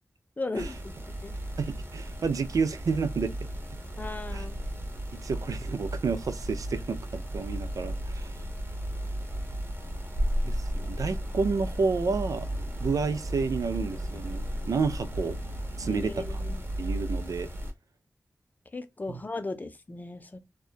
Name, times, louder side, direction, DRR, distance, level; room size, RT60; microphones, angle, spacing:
voice 1, 0.4-0.8 1.2-1.3 4.0-4.5 15.8-16.6 18.7-20.4, left 3 dB, 30° left, 0.5 m, -36 dB
sound 1, 0.6-17.7, equal, 40° right, 0.8 m, -34 dB
voice 2, 1.6-3.3 4.3-4.4 5.1-8.3 10.4-12.5 12.8-15.4 15.8-16.4 16.8-17.5 19.1-19.2, right 4 dB, 75° right, 0.4 m, -30 dB
2.8 x 2.2 x 2.2 m
wide cardioid pair, 90°, 6 cm